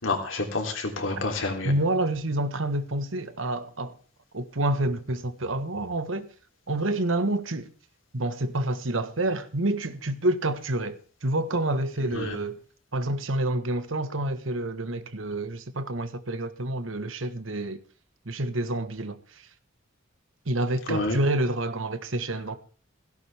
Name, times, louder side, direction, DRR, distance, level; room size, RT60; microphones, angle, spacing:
voice 1, 0.0-1.7 12.1-12.4 20.9-21.2, left 2 dB, 75° left, 3.2 m, -28 dB
voice 2, 1.6-4.0 4.3-6.3 6.7-7.7 8.1-12.6 12.9-17.8 18.2-19.4 20.4-22.6, right 1 dB, 75° right, 1.4 m, -28 dB
17.0 x 16.0 x 3.5 m
head